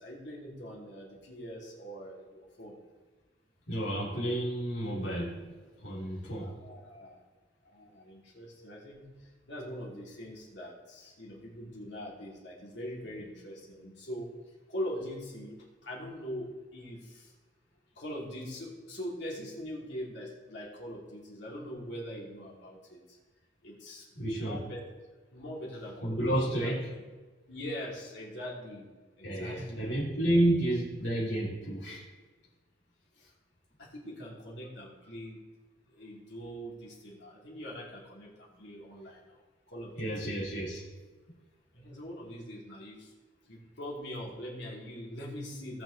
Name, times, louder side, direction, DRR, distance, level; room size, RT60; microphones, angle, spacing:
voice 1, 0.0-2.8 6.4-7.2 7.6-9.0 9.5-14.3 14.7-15.6 15.8-17.3 17.9-23.2 23.6-24.1 24.4-24.8 25.3-26.8 27.5-28.9 29.2-29.9 33.8-35.4 35.9-39.4 39.7-40.3 41.7-43.1 43.5-45.8, equal, 70° left, -3 dB, 2.9 m, -42 dB
voice 2, 3.7-5.4 5.8-6.5 24.2-24.6 26.0-26.9 29.2-32.0 40.0-40.8, right 1 dB, 90° left, -5 dB, 3.1 m, -30 dB
18.0 x 6.2 x 3.3 m, 1.3 s
head